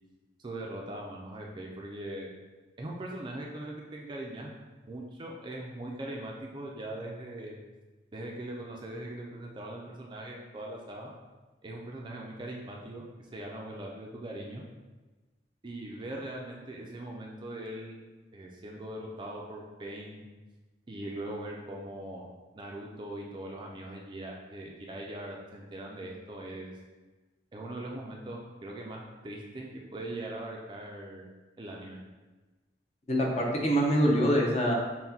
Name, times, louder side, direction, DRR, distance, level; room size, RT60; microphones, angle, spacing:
voice 1, 0.4-2.3 2.8-7.6 8.1-11.1 11.6-13.0 13.3-14.6 15.6-18.0 18.3-20.3 20.9-22.3 22.5-26.7 27.5-31.3 31.6-32.0, right 1 dB, 25° right, -1 dB, 0.4 m, -40 dB
voice 2, 33.1-34.7, equal, 35° left, -2 dB, 0.6 m, -25 dB
5.7 x 2.1 x 2.7 m, 1.2 s
head